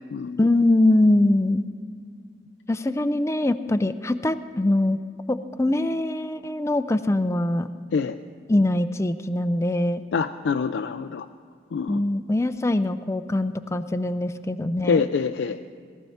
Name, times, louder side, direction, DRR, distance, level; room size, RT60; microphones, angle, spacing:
voice 1, 0.4-1.6 2.7-5.0 5.3-7.7 8.5-10.0 11.9-15.0, left 1 dB, 15° left, 11 dB, 0.4 m, -22 dB
voice 2, 10.1-11.3 11.7-12.0 14.8-15.6, left 5 dB, 90° left, 8 dB, 0.4 m, -25 dB
18.5 x 13.5 x 4.2 m, 2.3 s
head